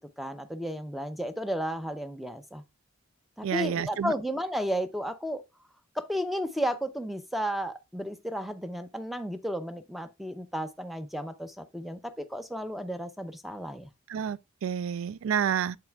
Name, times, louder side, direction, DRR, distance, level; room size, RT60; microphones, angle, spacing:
voice 1, 0.2-2.6 3.4-5.4 6.0-13.9, equal, ahead, 0.5 m, -33 dB
voice 2, 3.4-4.1 14.1-15.8, right 8 dB, 75° right, 0.3 m, -29 dB
7.9 x 7.5 x 2.3 m
head